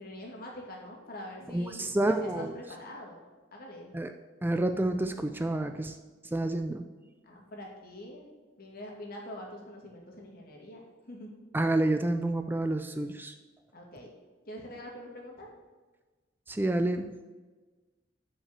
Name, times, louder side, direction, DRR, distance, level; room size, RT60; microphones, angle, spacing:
voice 1, 0.0-4.0 7.2-8.3 8.6-11.5 13.7-14.1 14.5-15.5, left 1 dB, 55° left, -1 dB, 2.3 m, -44 dB
voice 2, 1.5-2.5 3.9-4.1 4.4-6.0 6.3-6.9 11.5-13.3 16.5-17.1, right 1 dB, 10° right, 7 dB, 0.4 m, -29 dB
8.7 x 5.5 x 6.6 m, 1.3 s
head